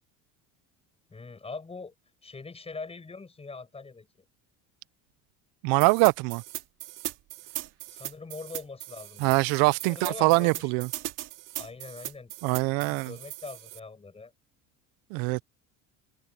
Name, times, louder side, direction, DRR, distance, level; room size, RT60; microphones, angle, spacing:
voice 1, 1.1-1.9 2.2-4.1 7.9-9.4 9.8-10.9 11.6-12.3 12.9-14.3, left 4 dB, 15° left, 5.6 m, -42 dB
voice 2, 5.6-6.4 9.2-10.9 12.4-13.1 15.1-15.4, right 26 dB, 80° right, 0.5 m, -23 dB
sound 1, 5.8-13.8, right 15 dB, 65° right, 2.3 m, -39 dB
cardioid pair, 120°, 34 cm